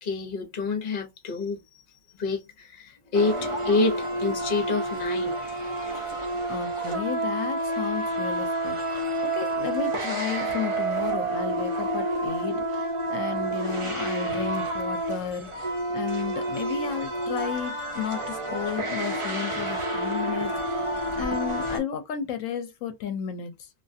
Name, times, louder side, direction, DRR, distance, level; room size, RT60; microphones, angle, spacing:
voice 1, 0.0-1.6 2.1-6.0 12.5-12.6, left 4 dB, 45° left, 0.9 m, -28 dB
sound 1, 3.1-21.8, right 1 dB, 30° right, 0.6 m, -29 dB
voice 2, 6.5-23.7, left 8 dB, 80° left, 1.0 m, -33 dB
2.5 x 2.3 x 2.5 m
omnidirectional pair, 1.3 m